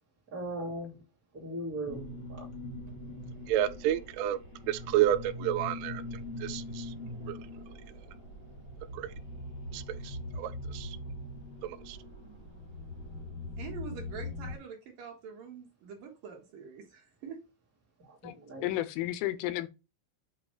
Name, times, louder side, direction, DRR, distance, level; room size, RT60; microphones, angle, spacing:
voice 1, 0.3-1.0 1.3-2.2 12.2-12.4 18.2-18.7, right 1 dB, 30° right, 1.6 m, -38 dB
sound 1, 1.8-14.6, left 2 dB, 40° left, 1.0 m, -42 dB
voice 2, 3.5-4.4 4.7-6.0 6.4-6.9 7.3-7.4 8.9-9.1 9.7-11.0 11.6-12.0, right 12 dB, 90° right, 3.2 m, -30 dB
voice 3, 13.6-17.4, right 6 dB, 60° right, 2.4 m, -45 dB
voice 4, 18.6-19.7, left 15 dB, 90° left, 3.3 m, -32 dB
8.2 x 3.0 x 4.7 m
omnidirectional pair, 5.7 m